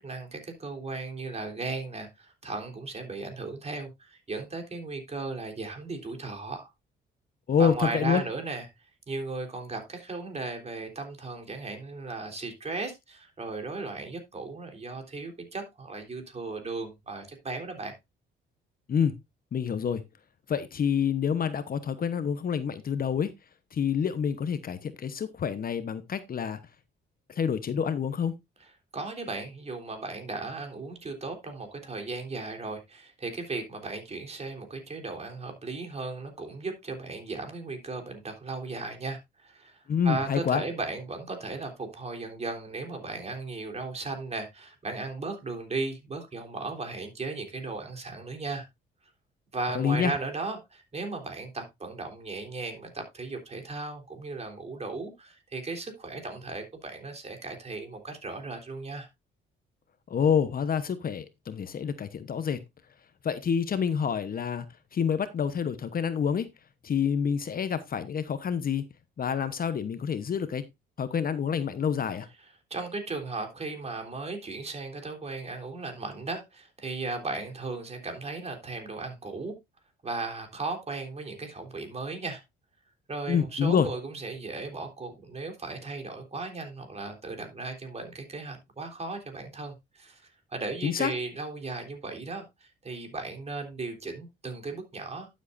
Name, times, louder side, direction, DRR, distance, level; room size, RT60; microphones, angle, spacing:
voice 1, 0.0-6.7 7.6-8.7 9.1-17.9 28.6-28.7 28.9-48.7 49.5-59.1 72.7-79.5 80.0-82.4 83.1-90.2 90.5-95.3, right 3 dB, 30° right, 3.6 m, -36 dB
voice 2, 7.5-8.2 18.9-19.1 19.5-20.0 20.5-23.3 23.7-26.6 27.3-28.3 39.9-40.6 49.7-50.1 60.1-62.6 63.2-64.7 64.9-66.5 66.8-68.8 69.2-70.6 71.0-72.3 83.3-83.9 90.8-91.1, left 7 dB, 45° left, 1.0 m, -27 dB
11.5 x 7.5 x 2.6 m
cardioid pair, 90°, 20 cm